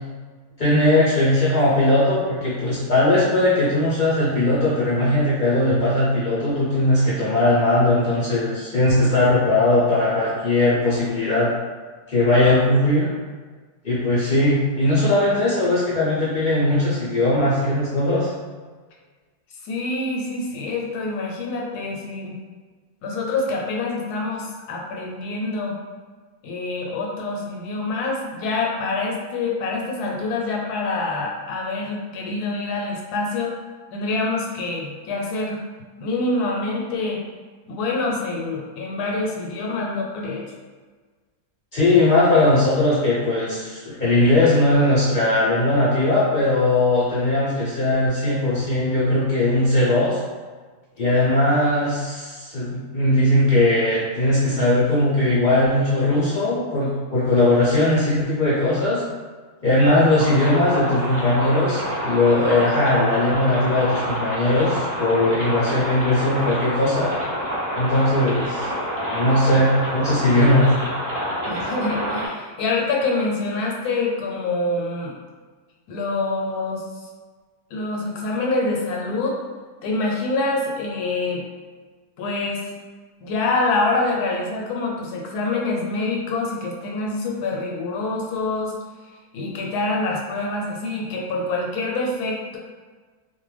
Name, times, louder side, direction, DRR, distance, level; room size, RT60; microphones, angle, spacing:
voice 1, 0.6-11.5 12.1-13.1 13.8-18.3 41.7-50.2 51.0-59.0 59.6-67.1 67.7-68.7 69.1-70.7, left 1 dB, 55° left, -9 dB, 0.5 m, -19 dB
voice 2, 19.6-22.4 23.0-25.8 26.4-33.6 33.9-35.6 36.0-37.2 37.7-40.5 71.4-75.1 75.9-76.8 77.7-79.4 79.8-81.5 82.2-82.6 83.2-88.7 89.3-92.6, left 3 dB, 85° left, -1 dB, 1.1 m, -26 dB
sound 1, 60.1-72.3, equal, 75° right, 0.3 m, -27 dB
2.5 x 2.1 x 3.2 m, 1.4 s
omnidirectional pair, 1.6 m